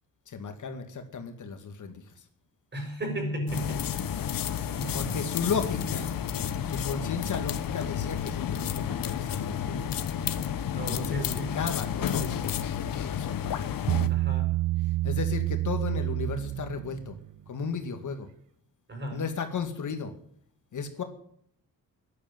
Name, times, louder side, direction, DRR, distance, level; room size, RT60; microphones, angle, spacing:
voice 1, 0.3-2.2 4.9-6.1 6.6-9.9 10.9-13.7 15.0-17.2 17.5-18.3 19.1-20.1 20.7-21.0, left 5 dB, 60° left, 7 dB, 2.1 m, -34 dB
voice 2, 2.7-4.0 4.7-5.1 6.4-6.6 10.7-11.6 14.1-14.5 18.9-19.2, equal, 30° right, 3 dB, 6.4 m, -34 dB
sound 1, 3.5-14.1, left 9 dB, 80° left, 1.2 m, -31 dB
Bass guitar, 13.9-17.3, right 15 dB, 65° right, 0.6 m, -28 dB
11.0 x 11.0 x 9.1 m, 0.66 s
cardioid pair, 120°, 34 cm